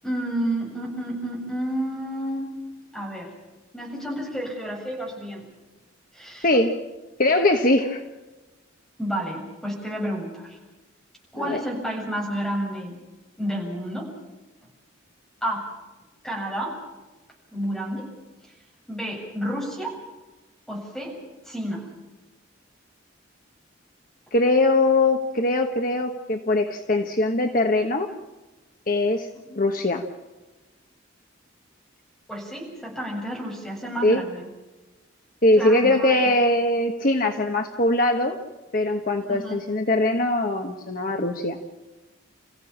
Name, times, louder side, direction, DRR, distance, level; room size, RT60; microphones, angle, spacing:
voice 1, 0.0-2.6 2.9-3.3 3.7-5.5 6.1-6.7 9.0-10.6 11.3-13.0 13.4-14.1 15.4-15.7 16.2-16.8 17.5-18.1 18.9-20.0 20.7-21.2 21.4-21.9 29.5-29.6 32.3-34.5 35.6-36.3 39.3-39.6, right 1 dB, ahead, -2 dB, 7.7 m, -30 dB
voice 2, 7.2-8.0 11.4-11.6 24.3-28.1 28.9-29.3 29.5-30.0 34.0-34.2 35.4-38.4 38.7-41.6, left 2 dB, 45° left, 4 dB, 1.3 m, -21 dB
29.5 x 16.0 x 7.4 m, 1.1 s
head